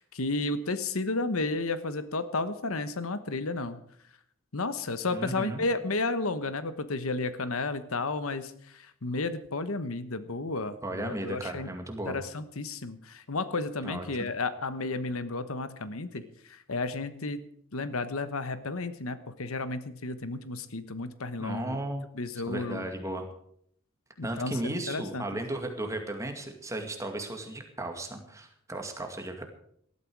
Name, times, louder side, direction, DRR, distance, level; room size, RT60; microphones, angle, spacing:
voice 1, 0.0-3.8 4.5-11.8 12.0-17.5 17.7-21.8 22.1-22.8 24.2-25.4, left 3 dB, 80° left, 12 dB, 1.2 m, -32 dB
voice 2, 5.1-5.6 10.8-12.2 13.8-14.1 21.4-22.1 22.5-23.3 24.2-29.5, right 1 dB, 15° right, 4 dB, 2.1 m, -35 dB
18.5 x 13.0 x 4.8 m, 0.67 s
head